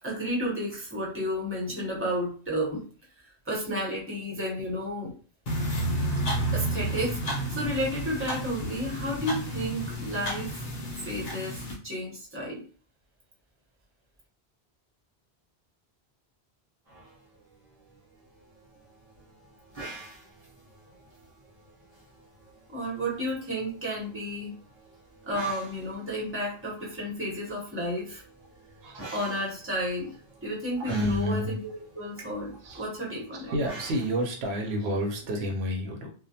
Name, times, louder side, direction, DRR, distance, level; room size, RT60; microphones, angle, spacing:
voice 1, 0.0-2.8 3.2-5.1 6.5-10.6 11.0-12.6 22.7-24.5 25.3-28.2 29.1-30.1 30.4-31.6 31.9-33.5, equal, 15° right, -4 dB, 0.9 m, -32 dB
sound 1, 5.5-11.7, right 1 dB, 70° left, 1.0 m, -31 dB
sound 2, 16.9-35.5, right 2 dB, 40° right, 0.9 m, -49 dB
voice 2, 30.9-31.6 32.6-32.9 33.3-36.1, equal, 80° right, 2 dB, 0.8 m, -29 dB
2.2 x 2.1 x 2.7 m, 0.40 s
omnidirectional pair, 1.1 m